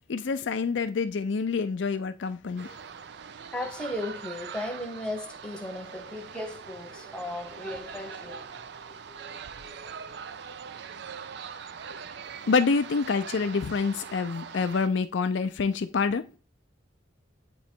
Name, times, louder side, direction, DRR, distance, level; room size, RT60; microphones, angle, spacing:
voice 1, 0.1-2.8 12.5-16.3, left 4 dB, 65° left, 0.4 m, -27 dB
sound 1, 2.6-14.9, right 6 dB, 55° right, 0.4 m, -42 dB
voice 2, 3.5-10.2, left 1 dB, 5° left, 0.9 m, -37 dB
8.4 x 3.0 x 4.4 m
head